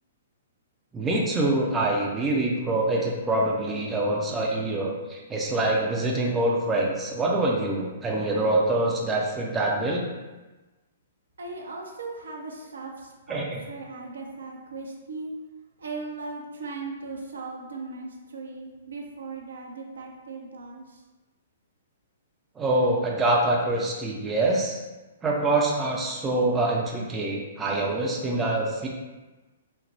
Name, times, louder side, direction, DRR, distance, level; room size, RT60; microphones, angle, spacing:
voice 1, 0.9-10.0 13.3-13.6 22.6-24.8 25.2-28.9, right 2 dB, 15° right, -2 dB, 0.5 m, -25 dB
voice 2, 11.4-15.3 15.8-21.0, right 3 dB, 65° right, 1 dB, 0.5 m, -38 dB
4.0 x 2.1 x 3.2 m, 1.2 s
figure-of-eight pair, 115°, 0 cm